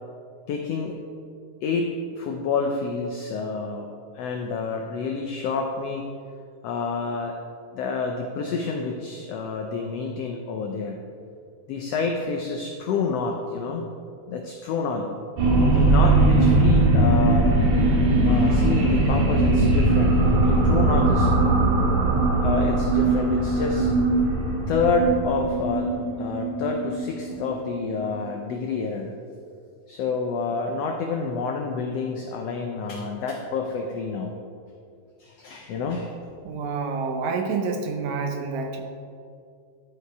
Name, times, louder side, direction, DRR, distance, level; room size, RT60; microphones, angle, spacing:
voice 1, 0.5-1.0 1.6-3.9 4.1-6.1 6.6-7.3 7.7-11.0 11.7-13.8 14.3-15.2 15.5-17.5 18.2-21.3 22.4-23.9 24.7-25.9 26.2-29.1 29.9-34.3 35.2-36.1, left 4 dB, 90° left, 3 dB, 1.4 m, -28 dB
sound 1, 15.4-28.2, right 2 dB, 90° right, 3.6 m, -20 dB
voice 2, 36.5-38.8, right 4 dB, 75° right, 4 dB, 1.8 m, -28 dB
13.0 x 4.8 x 4.6 m, 2.4 s
omnidirectional pair, 3.6 m